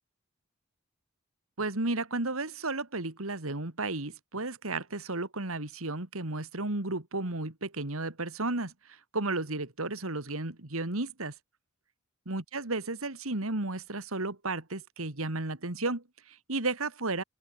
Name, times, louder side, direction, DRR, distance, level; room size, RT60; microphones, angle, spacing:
voice 1, 1.6-11.3 12.3-17.2, right 2 dB, 80° right, 2.5 m, -33 dB
open air
head